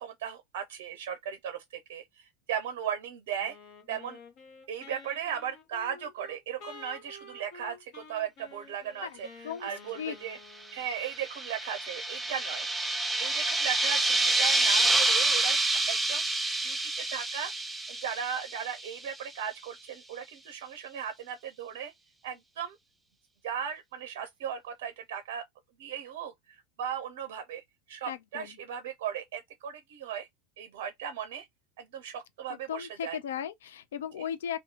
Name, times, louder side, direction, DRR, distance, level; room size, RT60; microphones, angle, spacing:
voice 1, 0.0-3.6 3.9-4.2 4.7-9.3 9.6-10.4 10.7-12.7 13.2-16.2 16.6-17.5 17.9-21.9 22.2-22.8 23.4-25.4 25.8-27.6 27.9-30.3 30.6-31.5 31.8-33.2, right 8 dB, 65° right, 0.5 m, -37 dB
Wind instrument woodwind instrument, 3.4-11.1, left 3 dB, 55° left, 1.1 m, -50 dB
voice 2, 9.0-9.7 9.9-10.2 28.0-28.6 32.5-34.6, left 9 dB, 75° left, 0.4 m, -37 dB
sound 1, 10.8-19.1, right 2 dB, 5° right, 0.6 m, -28 dB
2.7 x 2.2 x 2.8 m
hypercardioid pair, 85°, 0 cm